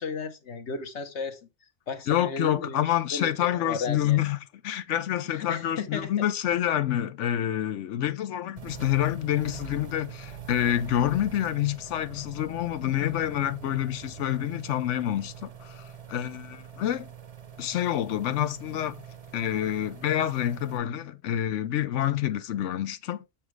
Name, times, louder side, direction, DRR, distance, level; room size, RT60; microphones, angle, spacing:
voice 1, 0.0-1.4 1.9-4.2 5.3-6.2, left 4 dB, 70° left, 1.3 m, -34 dB
voice 2, 2.1-4.4 4.6-17.1 17.6-19.0 19.3-23.2, left 11 dB, 90° left, 1.0 m, -27 dB
sound 1, 8.6-20.8, right 7 dB, 35° right, 0.8 m, -44 dB
7.3 x 6.1 x 3.2 m
omnidirectional pair, 1.2 m